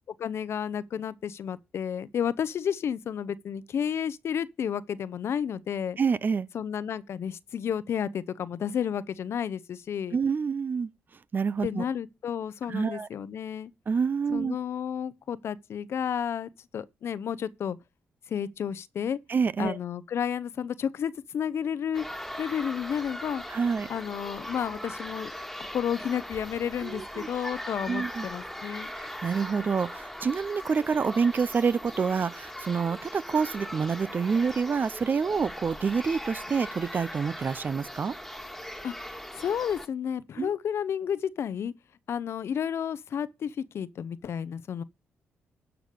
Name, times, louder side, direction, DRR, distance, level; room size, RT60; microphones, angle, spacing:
voice 1, 0.2-6.0 6.5-10.2 11.6-13.7 14.3-17.8 18.3-19.2 19.6-22.0 22.4-23.4 23.9-25.3 25.6-28.9 38.8-38.9 39.3-41.7 42.1-44.8, left 8 dB, 65° left, 0.7 m, -31 dB
voice 2, 6.0-6.5 10.1-10.9 11.3-11.8 12.7-13.1 13.9-14.6 19.3-19.8 23.5-23.9 26.8-27.3 27.9-28.3 28.9-38.2 40.4-40.5, right 5 dB, 45° right, 0.6 m, -27 dB
sound 1, 21.9-39.9, left 1 dB, 5° left, 1.8 m, -40 dB
12.0 x 5.1 x 6.7 m
cardioid pair, 70°, 5 cm